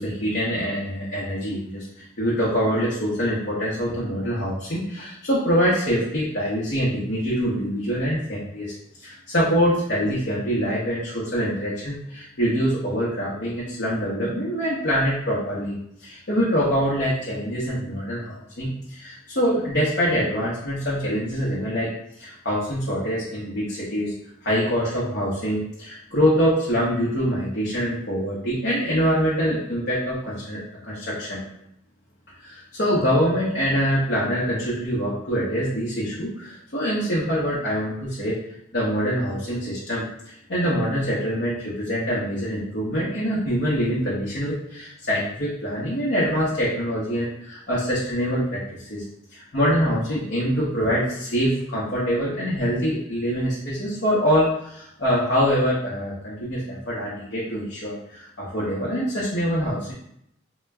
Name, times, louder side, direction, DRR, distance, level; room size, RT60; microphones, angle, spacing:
voice 1, 0.0-1.9 2.2-8.7 9.0-21.9 22.2-24.1 24.4-31.4 32.4-38.4 38.7-40.0 40.5-49.0 49.3-59.9, equal, 60° left, -8 dB, 0.8 m, -24 dB
3.8 x 2.1 x 3.4 m, 0.75 s
head